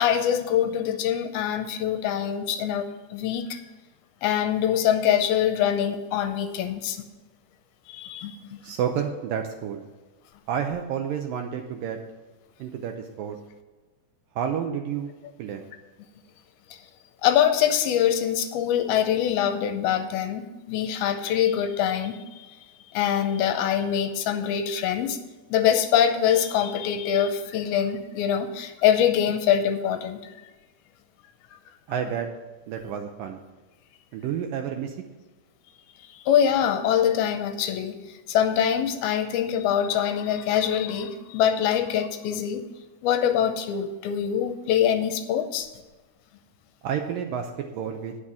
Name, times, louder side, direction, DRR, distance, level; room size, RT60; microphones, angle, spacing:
voice 1, 0.0-2.8 3.1-3.6 4.2-7.0 7.9-8.6 17.2-22.6 22.9-25.2 25.5-30.3 36.1-42.6 43.0-45.7, left 9 dB, 80° left, 8 dB, 2.4 m, -24 dB
voice 2, 8.6-9.9 10.5-12.0 12.6-13.4 14.4-15.1 15.4-15.6 31.9-32.3 32.7-33.4 34.1-35.0 46.8-48.2, right 8 dB, 75° right, 4 dB, 2.1 m, -30 dB
9.8 x 6.4 x 7.1 m, 1.2 s
omnidirectional pair, 4.6 m